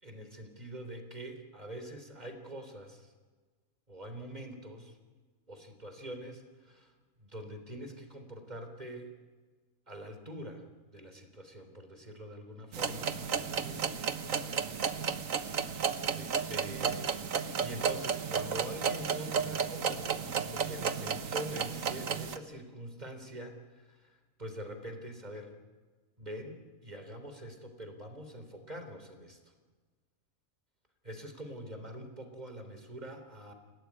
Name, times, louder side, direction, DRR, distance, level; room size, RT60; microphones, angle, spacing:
voice 1, 0.0-3.1 3.9-5.0 5.5-6.9 7.2-9.1 9.9-10.7 10.9-14.2 15.8-25.5 26.2-29.4 31.0-33.5, equal, 30° right, 7 dB, 3.6 m, -44 dB
sound 1, 12.7-22.4, right 6 dB, 85° right, 1.6 m, -33 dB
28.0 x 17.5 x 9.8 m, 1.4 s
omnidirectional pair, 1.4 m